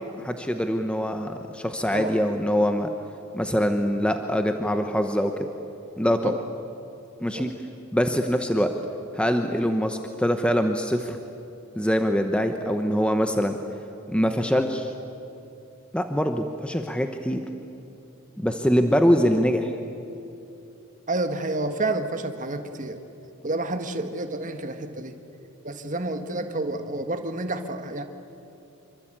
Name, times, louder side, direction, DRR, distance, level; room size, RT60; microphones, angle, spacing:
voice 1, 0.1-2.9 3.3-5.3 6.0-6.3 7.2-7.5 7.9-8.7 9.1-11.2 11.8-13.6 14.1-14.9 15.9-17.4 18.4-19.7, equal, 5° left, 6 dB, 1.0 m, -23 dB
voice 2, 21.1-23.0 23.4-25.2 25.6-28.0, right 2 dB, 35° right, 7 dB, 1.7 m, -29 dB
27.0 x 24.5 x 9.0 m, 2.8 s
head